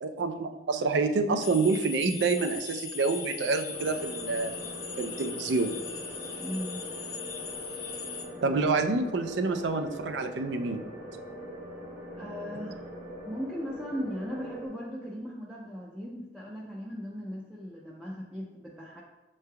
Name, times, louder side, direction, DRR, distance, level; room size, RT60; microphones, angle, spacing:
voice 1, 0.0-4.5 5.0-5.7 8.4-10.8, right 3 dB, 85° right, 7 dB, 0.4 m, -27 dB
sound 1, 1.4-8.3, left 5 dB, 70° left, 0.6 m, -40 dB
sound 2, 3.7-14.7, equal, 50° right, 1.2 m, -42 dB
voice 2, 6.4-6.8 12.2-12.9 13.3-19.0, equal, 5° right, -5 dB, 0.4 m, -38 dB
6.6 x 3.2 x 2.2 m, 1.1 s
head